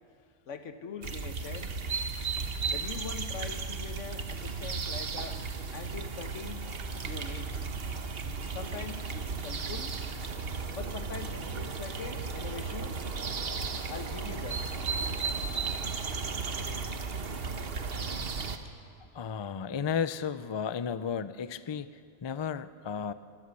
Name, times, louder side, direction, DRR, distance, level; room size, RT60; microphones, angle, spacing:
voice 1, 0.5-1.7 2.7-5.4 5.7-6.7 7.0-7.7 8.5-10.0 10.7-13.0 13.9-14.6, left 6 dB, 90° left, 9 dB, 1.5 m, -42 dB
sound 1, 1.0-18.6, right 4 dB, 55° right, 1.3 m, -35 dB
voice 2, 19.1-23.1, left 7 dB, 40° left, 14 dB, 0.4 m, -33 dB
24.0 x 14.0 x 8.3 m, 2.4 s
omnidirectional pair, 1.2 m